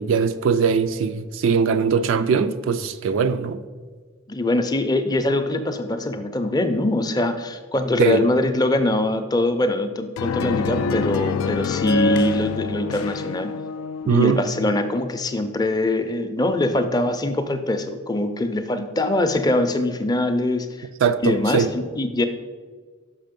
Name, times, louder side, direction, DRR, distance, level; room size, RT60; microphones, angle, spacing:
voice 1, 0.0-3.6 8.0-8.2 14.1-14.4 21.0-21.7, right 6 dB, 70° right, 0.3 m, -20 dB
voice 2, 4.3-13.5 14.0-20.9 21.2-22.3, left 1 dB, 20° left, 0.5 m, -23 dB
sound 1, 10.2-14.3, left 4 dB, 90° left, 0.3 m, -26 dB
6.0 x 5.6 x 5.2 m
head